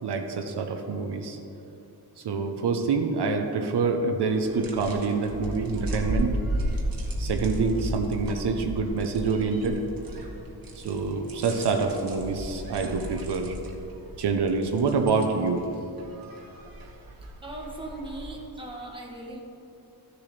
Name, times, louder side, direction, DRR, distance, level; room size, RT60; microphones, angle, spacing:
voice 1, 0.0-1.4 2.2-6.4 7.2-9.8 10.8-13.5 14.2-15.7, right 4 dB, 85° right, 4 dB, 0.9 m, -26 dB
sound 1, 4.3-18.4, right 1 dB, 60° right, 1.4 m, -34 dB
voice 2, 17.4-19.4, right 2 dB, 15° right, -1 dB, 1.2 m, -38 dB
14.0 x 6.9 x 3.3 m, 2.8 s
wide cardioid pair, 165°, 39 cm